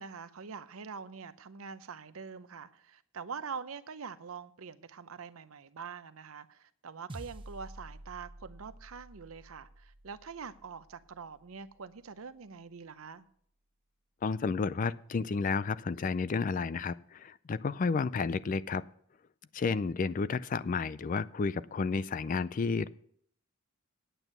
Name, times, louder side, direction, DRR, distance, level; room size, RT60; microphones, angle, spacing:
voice 1, 0.0-13.2, right 6 dB, 90° right, 0.7 m, -44 dB
sound 1, 7.1-11.7, right 1 dB, 25° right, 0.8 m, -50 dB
voice 2, 14.2-18.8 19.5-22.9, left 4 dB, 40° left, 0.3 m, -31 dB
9.1 x 8.1 x 6.7 m
head